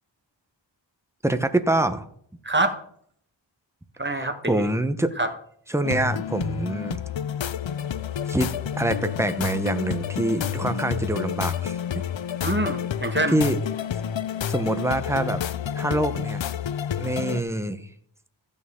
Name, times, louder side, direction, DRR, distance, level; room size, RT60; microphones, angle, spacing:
voice 1, 1.2-2.1 4.5-5.1 5.7-7.0 8.3-12.0 13.3-13.6 14.5-15.4 15.7-16.4 17.0-17.9, right 1 dB, 5° right, 9 dB, 0.9 m, -25 dB
voice 2, 2.4-2.8 4.0-4.7 5.2-5.3 12.4-13.4, right 2 dB, 25° right, 6 dB, 1.4 m, -25 dB
sound 1, 5.8-17.4, left 9 dB, 75° left, 0.5 m, -29 dB
14.5 x 6.5 x 3.7 m, 0.64 s
wide cardioid pair, 45°, 46 cm